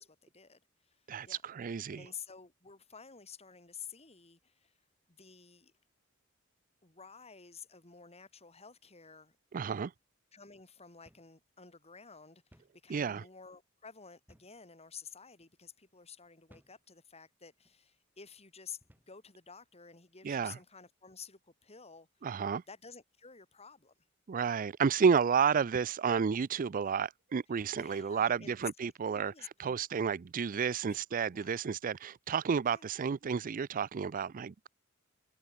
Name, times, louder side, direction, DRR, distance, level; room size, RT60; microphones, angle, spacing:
voice 1, 0.0-1.5 1.9-4.7 5.1-5.7 6.8-9.4 10.3-18.8 19.1-22.1 22.7-23.9 27.8-29.8 30.8-31.6 32.6-32.9, left 6 dB, 30° left, 4.4 m, -52 dB
voice 2, 1.1-2.0 9.5-9.9 12.9-13.2 20.2-20.6 22.2-22.6 24.3-29.3 29.6-34.7, right 6 dB, 40° right, 0.4 m, -31 dB
sound 1, 11.1-11.4 11.7-11.8 12.5-12.8 14.3-14.6 15.3-15.5 16.5-16.8 17.6-17.8 18.8-19.2, equal, 10° right, 7.7 m, -63 dB
head